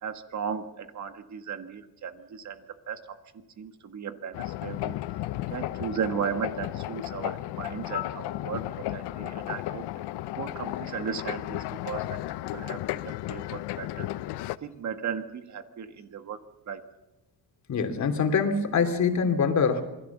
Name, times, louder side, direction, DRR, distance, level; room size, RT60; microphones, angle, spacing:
voice 1, 0.0-3.0 3.6-5.0 5.5-9.9 10.4-12.2 12.5-14.1 14.6-16.4 16.7-16.8, right 7 dB, 45° right, 8 dB, 1.6 m, -36 dB
sound 1, 4.3-14.6, left 15 dB, 85° left, 0.8 m, -34 dB
voice 2, 17.7-19.8, left 5 dB, 45° left, 7 dB, 2.9 m, -24 dB
27.0 x 20.0 x 7.2 m, 1.0 s
cardioid pair, 135°, 39 cm